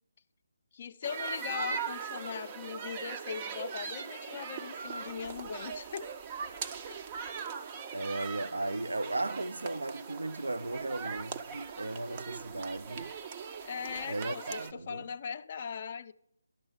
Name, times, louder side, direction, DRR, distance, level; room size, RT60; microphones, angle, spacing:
voice 1, 0.7-6.1 6.9-7.0 13.6-16.1, left 7 dB, 35° left, 0.4 m, -39 dB
sound 1, 1.0-14.7, right 6 dB, 25° right, 0.4 m, -40 dB
voice 2, 7.9-13.1 14.0-15.0, right 2 dB, 85° right, 0.4 m, -36 dB
12.0 x 5.5 x 7.1 m
figure-of-eight pair, 165°, 0 cm